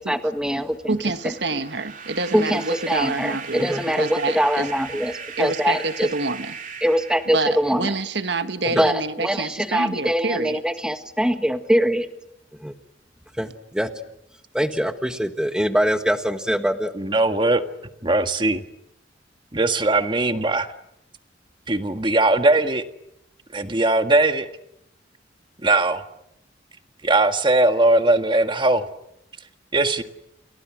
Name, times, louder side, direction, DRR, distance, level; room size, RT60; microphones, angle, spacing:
voice 1, 0.0-0.8 2.3-6.1 6.8-7.8 8.7-12.1 12.6-12.7 13.4-13.9 14.5-16.9, equal, 5° right, 8 dB, 1.6 m, -23 dB
voice 2, 0.9-4.7 5.4-6.6 7.3-10.6, right 3 dB, 65° right, 10 dB, 1.5 m, -27 dB
sound 1, 1.0-8.0, right 6 dB, 45° right, 2.6 m, -38 dB
voice 3, 16.9-17.6 18.0-18.6 19.5-20.7 21.7-22.8 23.5-24.5 25.6-26.0 27.0-28.8 29.7-30.0, right 2 dB, 25° right, 8 dB, 1.7 m, -19 dB
30.0 x 28.5 x 6.2 m, 0.81 s
head